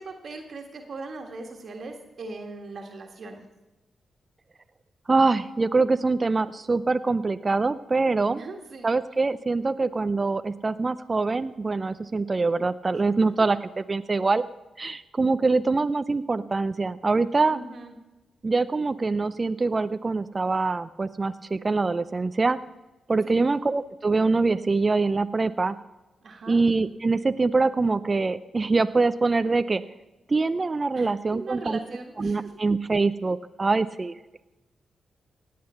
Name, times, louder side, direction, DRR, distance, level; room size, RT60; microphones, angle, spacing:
voice 1, 0.0-3.4 8.4-8.9 17.5-17.9 23.2-23.5 26.2-26.6 30.9-32.5, right 3 dB, 60° right, 3 dB, 1.8 m, -39 dB
voice 2, 5.1-8.4 8.8-14.4 14.8-17.6 18.4-22.6 23.1-25.7 26.5-29.8 30.3-31.8 32.2-34.1, right 3 dB, 40° right, 12 dB, 0.5 m, -24 dB
17.0 x 8.6 x 5.7 m, 1.1 s
supercardioid pair, 40°, 0 cm